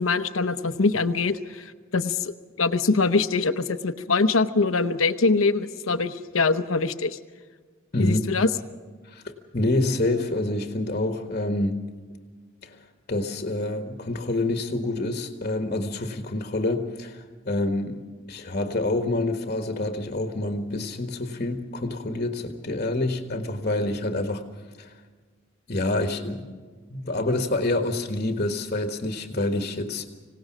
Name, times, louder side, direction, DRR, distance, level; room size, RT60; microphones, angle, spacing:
voice 1, 0.0-7.2 8.0-8.5, left 3 dB, 90° left, 9 dB, 0.9 m, -23 dB
voice 2, 9.0-11.8 12.6-12.8 13.1-18.0 18.3-24.4 24.8-24.9 25.7-26.6 26.9-30.1, left 2 dB, 40° left, 5 dB, 1.5 m, -27 dB
26.0 x 17.5 x 6.2 m, 1.5 s
head